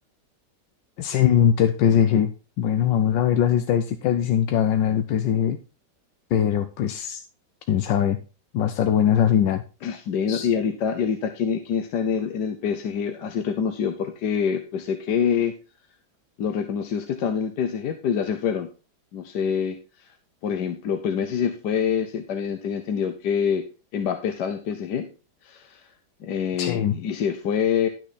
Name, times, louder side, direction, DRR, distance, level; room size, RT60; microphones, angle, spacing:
voice 1, 1.0-2.3 2.6-5.6 6.3-7.2 7.7-8.2 8.5-9.6 10.3-10.5 26.6-27.0, left 9 dB, 85° left, 8 dB, 1.4 m, -21 dB
voice 2, 9.8-15.5 16.4-18.7 19.1-20.1 20.4-23.6 23.9-25.1 25.4-25.9 26.2-27.9, left 7 dB, 70° left, 7 dB, 1.4 m, -26 dB
12.0 x 6.1 x 4.1 m, 0.33 s
omnidirectional pair, 2.0 m